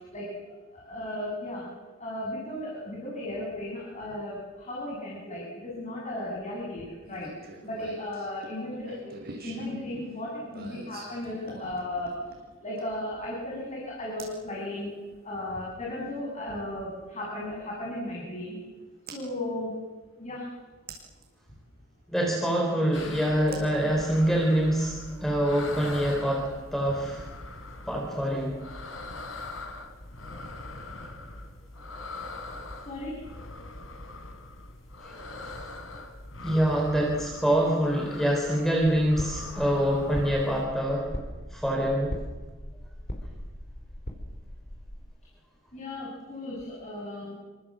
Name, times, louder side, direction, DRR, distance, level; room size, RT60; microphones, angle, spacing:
voice 1, 0.1-1.7 2.0-7.3 7.6-12.2 12.6-14.9 15.2-18.6 19.0-19.8 20.2-20.5 32.8-33.2 45.7-47.3, left 1 dB, 35° left, -3 dB, 7.8 m, -35 dB
sound 1, 7.0-13.1 14.2-14.4 16.3-16.4 19.1-19.2 20.9-21.3 23.5-24.5, right 2 dB, 50° right, 7.7 m, -45 dB
voice 2, 22.1-27.2 27.9-28.6 36.4-41.1 41.5-42.2, equal, ahead, 0 dB, 4.1 m, -25 dB
sound 2, 22.9-40.6, left 2 dB, 75° left, 3.7 m, -42 dB
sound 3, 38.8-45.0, equal, 55° left, 4.8 m, -39 dB
28.5 x 26.5 x 7.7 m, 1.3 s
head